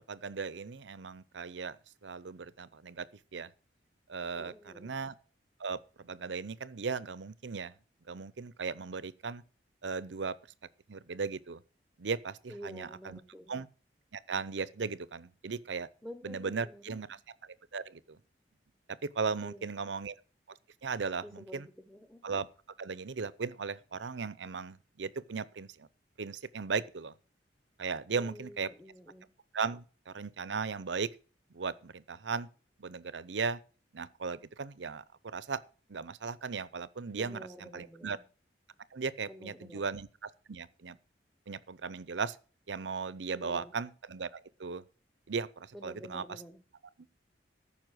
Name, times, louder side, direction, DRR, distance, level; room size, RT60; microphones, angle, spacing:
voice 1, 0.1-1.8 2.0-3.1 3.3-3.5 4.1-5.1 5.6-7.7 8.1-9.4 9.8-10.4 10.9-11.6 12.0-13.2 13.5-13.7 14.1-15.9 16.2-17.2 17.7-18.2 19.0-20.1 20.8-21.7 22.2-22.5 22.8-25.9 26.2-27.1 27.8-28.7 29.5-31.1 31.5-32.5 32.8-33.6 33.9-35.6 35.9-38.2 38.9-41.0 41.5-42.4 42.7-44.8 45.3-46.4, right 5 dB, 90° right, 0.7 m, -37 dB
voice 2, 4.3-5.0 12.5-13.6 16.0-17.2 19.4-20.0 21.2-22.2 28.1-29.3 37.1-38.1 39.3-39.9 43.4-43.7 45.7-46.6, equal, ahead, 1.0 m, -49 dB
14.0 x 5.7 x 6.3 m
head